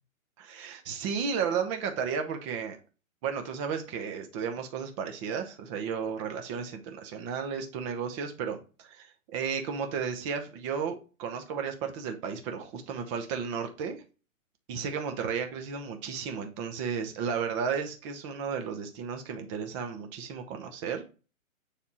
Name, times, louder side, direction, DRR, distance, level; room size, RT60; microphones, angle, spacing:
voice 1, 0.4-2.8 3.2-14.0 14.7-21.1, right 6 dB, 25° right, 6 dB, 0.9 m, -33 dB
7.0 x 3.6 x 4.2 m, 0.34 s
hypercardioid pair, 150°, 41 cm